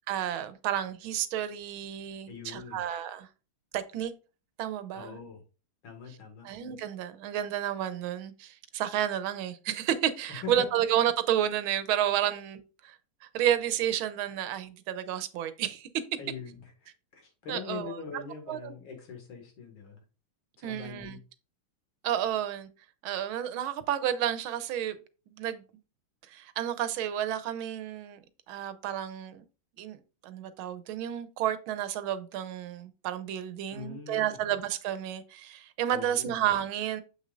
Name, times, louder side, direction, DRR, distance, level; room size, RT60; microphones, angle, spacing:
voice 1, 0.1-3.3 3.7-4.1 4.6-5.2 6.4-16.0 17.5-18.2 18.5-18.7 20.6-21.2 22.0-22.7 23.0-25.0 25.4-25.6 26.3-28.2 28.5-29.4 29.8-37.0, right 10 dB, 85° right, 1.5 m, -31 dB
voice 2, 2.3-2.8 4.9-5.4 5.8-6.5 10.3-10.8 16.2-20.0 20.6-21.2 33.7-34.4 35.9-36.4, left 6 dB, 75° left, 2.6 m, -42 dB
7.1 x 6.4 x 2.5 m
omnidirectional pair, 2.2 m